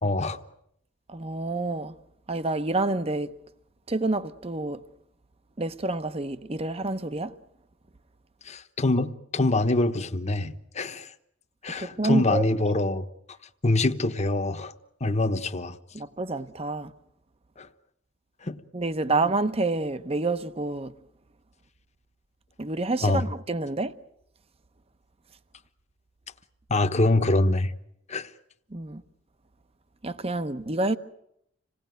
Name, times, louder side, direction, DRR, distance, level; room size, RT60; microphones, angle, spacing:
voice 1, 0.0-0.4 8.5-11.1 11.6-13.0 13.6-14.7 15.0-15.8 17.6-17.7 18.4-18.6 23.0-23.2 26.7-27.7 28.1-28.3, left 2 dB, 35° left, 1.1 m, -25 dB
voice 2, 1.1-1.9 2.3-3.3 3.9-4.8 5.6-7.3 11.8-12.4 15.9-16.9 18.7-20.9 22.6-23.9 28.7-29.0 30.0-31.0, right 2 dB, 30° right, 0.9 m, -28 dB
27.0 x 18.5 x 9.3 m
head